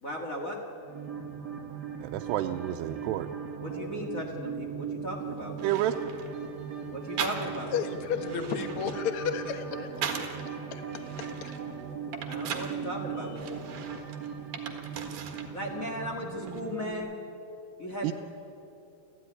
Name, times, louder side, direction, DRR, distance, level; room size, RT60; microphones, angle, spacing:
voice 1, 0.0-0.6 3.6-5.8 6.9-7.8 12.2-13.5 15.5-17.1 17.8-18.1, equal, 30° left, 1 dB, 1.6 m, -36 dB
sound 1, 0.9-16.9, right 7 dB, 30° right, 2.2 m, -39 dB
voice 2, 2.0-3.3 5.6-5.9 18.0-18.1, right 13 dB, 85° right, 4 dB, 2.8 m, -29 dB
sound 2, 5.1-5.2 5.6-6.3 7.2-7.8 8.2-10.4 10.9-12.8 13.4-15.5 15.8-16.6, right 7 dB, 55° right, 2.9 m, -38 dB
voice 3, 7.7-9.9 10.7-11.6, left 6 dB, 65° left, 8 dB, 1.4 m, -33 dB
29.0 x 14.5 x 9.8 m, 2.9 s
omnidirectional pair, 4.7 m